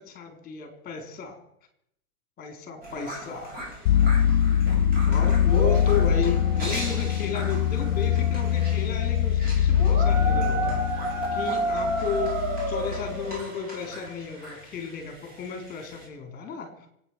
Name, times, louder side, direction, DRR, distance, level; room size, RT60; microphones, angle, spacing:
voice 1, 0.0-1.4 2.4-3.5 5.1-16.9, left 6 dB, 20° left, 4 dB, 4.2 m, -34 dB
sound 1, 2.8-16.0, right 2 dB, 20° right, 7.0 m, -33 dB
sound 2, 3.9-13.4, left 9 dB, 60° left, 0.7 m, -23 dB
24.0 x 9.5 x 6.3 m, 0.74 s
hypercardioid pair, 145°, 44 cm